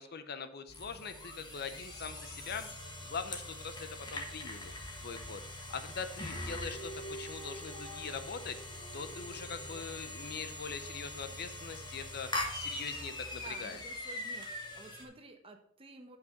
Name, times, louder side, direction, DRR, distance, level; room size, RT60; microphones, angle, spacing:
voice 1, 0.0-2.7 3.0-4.7 5.0-5.4 5.7-8.6 8.9-13.8, left 5 dB, 55° left, 11 dB, 0.7 m, -42 dB
sound 1, 0.7-15.0, left 1 dB, 20° left, 1.6 m, -42 dB
sound 2, 6.2-10.5, right 1 dB, 75° left, 3.2 m, -49 dB
voice 2, 13.4-16.2, right 2 dB, 30° right, 5 dB, 1.1 m, -52 dB
7.8 x 6.0 x 5.3 m, 0.65 s
head